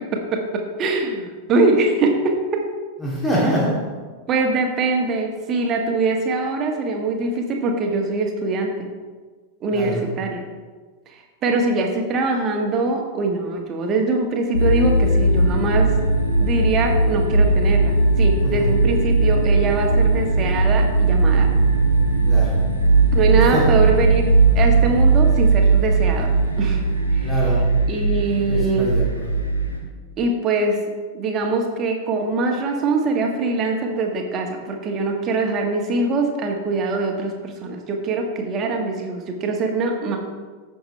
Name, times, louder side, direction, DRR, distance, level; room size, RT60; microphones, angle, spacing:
voice 1, 0.1-2.6 4.3-8.9 9.6-10.4 11.1-11.2 11.4-15.9 16.4-21.5 23.1-24.3 24.5-26.8 27.1-27.3 27.9-28.9 30.2-30.8 31.1-40.2, right 3 dB, 30° right, 2 dB, 1.6 m, -23 dB
voice 2, 3.0-3.7 9.7-10.0 18.4-18.7 22.3-22.5 23.5-23.8 27.2-27.6 28.5-29.4, equal, 15° left, -5 dB, 2.6 m, -24 dB
sound 1, 14.5-29.8, right 3 dB, 85° left, 1.4 m, -18 dB
14.5 x 6.2 x 3.3 m, 1.4 s
figure-of-eight pair, 90°, 0 cm